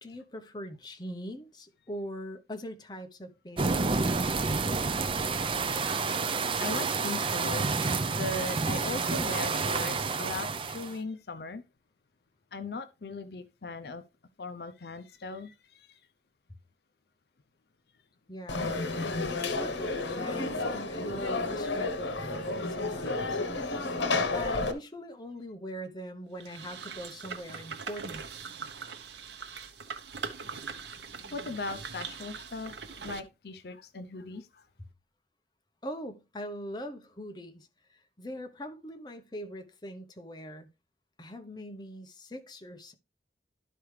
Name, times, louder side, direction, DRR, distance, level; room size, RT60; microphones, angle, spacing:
voice 1, 0.0-4.0 18.3-18.9 19.6-23.4 24.3-28.2 35.8-40.7 41.2-42.9, equal, 25° left, 0.8 m, -42 dB
sound 1, 3.6-10.9, right 4 dB, 30° right, 0.5 m, -29 dB
voice 2, 6.6-11.6 12.5-14.0 14.4-15.9 31.3-32.8 33.0-34.6, left 3 dB, 60° left, 0.5 m, -39 dB
Conversation / Crowd, 18.5-24.7, left 3 dB, 90° left, 1.0 m, -31 dB
sound 2, 26.4-33.2, right 5 dB, 75° right, 0.9 m, -41 dB
12.0 x 4.7 x 3.2 m
head